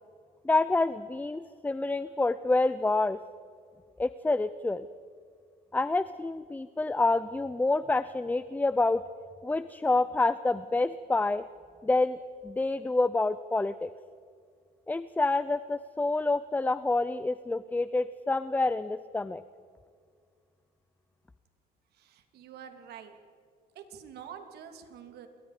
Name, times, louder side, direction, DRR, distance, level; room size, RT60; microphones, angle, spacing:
voice 1, 0.4-3.2 4.0-4.9 5.7-9.0 9.4-11.4 11.8-12.2 12.4-13.9 14.9-19.4, left 2 dB, 10° left, 15 dB, 0.6 m, -27 dB
voice 2, 21.9-23.2 23.7-25.3, right 8 dB, 75° right, 6 dB, 2.9 m, -47 dB
28.0 x 22.5 x 5.0 m, 2.2 s
cardioid pair, 110°, 17 cm